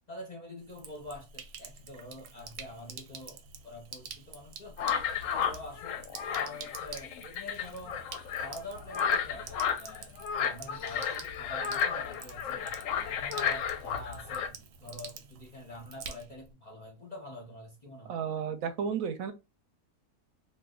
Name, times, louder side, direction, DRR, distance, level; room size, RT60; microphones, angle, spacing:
voice 1, 0.1-4.8 5.3-8.0 8.3-12.7 13.0-18.2, left 1 dB, 40° left, 0.6 m, -46 dB
Sink (filling or washing), 0.6-16.5, right 6 dB, 90° right, 1.1 m, -48 dB
sound 1, 4.8-14.5, left 7 dB, 65° left, 0.8 m, -32 dB
voice 2, 18.1-19.3, right 7 dB, 70° right, 0.9 m, -32 dB
2.6 x 2.4 x 3.6 m
omnidirectional pair, 1.7 m